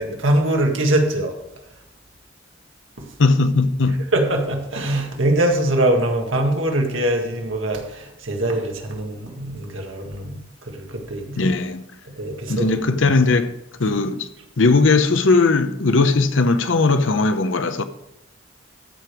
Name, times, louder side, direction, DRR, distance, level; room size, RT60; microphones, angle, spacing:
voice 1, 0.0-1.4 3.0-3.1 4.1-11.5 12.2-12.7, right 1 dB, 90° right, 1.8 m, -22 dB
voice 2, 3.2-4.0 11.4-11.8 12.5-13.5 13.8-14.3 14.6-17.8, left 3 dB, 80° left, 0.7 m, -18 dB
13.5 x 5.2 x 4.8 m
head